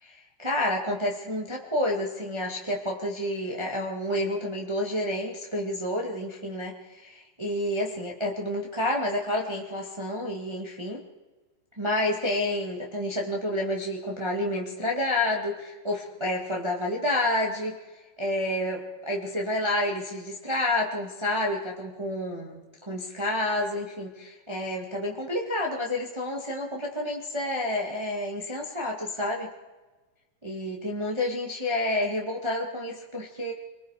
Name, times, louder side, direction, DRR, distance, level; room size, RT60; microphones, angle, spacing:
voice 1, 0.0-11.0 11.8-17.8 18.2-29.5 30.4-33.5, left 1 dB, 20° right, -2 dB, 0.7 m, -29 dB
27.0 x 20.0 x 5.0 m, 1.2 s
omnidirectional pair, 4.3 m